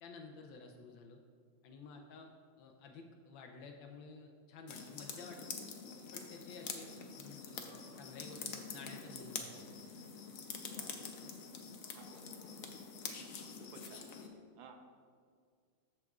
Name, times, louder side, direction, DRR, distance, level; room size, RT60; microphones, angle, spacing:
voice 1, 0.0-1.2 1.6-2.3 2.6-5.6 6.1-7.7 8.0-9.7, left 4 dB, 85° left, 3 dB, 1.4 m, -52 dB
sound 1, 4.7-14.3, left 5 dB, 60° left, 0.9 m, -46 dB
voice 2, 10.6-11.1 11.9-12.3 13.0-14.0 14.5-14.8, right 5 dB, 85° right, 4 dB, 1.6 m, -57 dB
14.0 x 5.9 x 2.4 m, 2.1 s
omnidirectional pair, 2.1 m